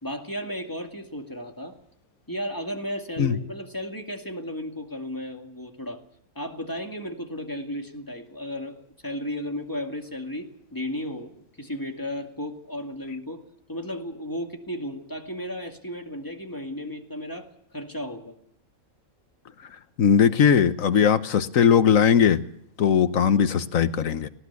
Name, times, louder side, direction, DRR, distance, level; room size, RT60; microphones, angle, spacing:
voice 1, 0.0-1.7 2.3-6.0 6.4-13.4 13.7-18.3, left 1 dB, 15° left, 3 dB, 2.2 m, -34 dB
voice 2, 20.0-22.4 22.8-24.3, left 7 dB, 70° left, 11 dB, 1.4 m, -19 dB
18.5 x 18.0 x 8.3 m, 0.71 s
omnidirectional pair, 1.5 m